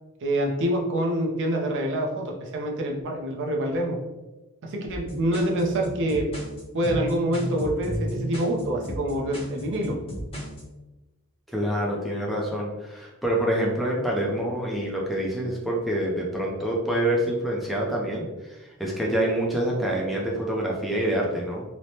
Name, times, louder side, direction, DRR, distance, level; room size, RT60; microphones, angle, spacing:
voice 1, 0.2-4.0 4.6-6.3 6.7-10.0, right 1 dB, 55° right, 0 dB, 0.5 m, -26 dB
sound 1, 4.9-10.6, equal, 25° left, 0.7 m, -33 dB
voice 2, 11.5-21.6, right 1 dB, ahead, -4 dB, 0.4 m, -26 dB
3.1 x 2.1 x 2.7 m, 1.1 s
head